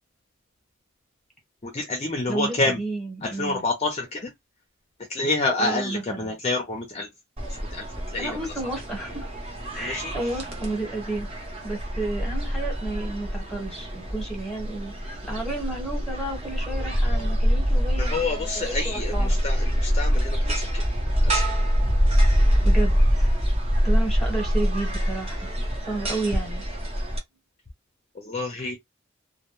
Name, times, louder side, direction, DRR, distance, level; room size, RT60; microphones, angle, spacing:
voice 1, 1.6-2.8 3.2-4.3 5.1-7.1 7.7-7.8 8.1-8.4 9.8-10.1 18.0-20.8 21.2-21.4 28.2-28.8, left 2 dB, 30° left, 0.5 m, -28 dB
voice 2, 2.3-3.6 5.6-6.4 8.2-9.3 9.7-11.3 11.6-19.4 22.6-23.3 23.8-25.5 25.9-26.7 28.5-28.8, right 2 dB, ahead, 1.1 m, -32 dB
sound 1, 7.4-27.2, equal, 30° right, 0.7 m, -25 dB
2.2 x 2.1 x 2.9 m
head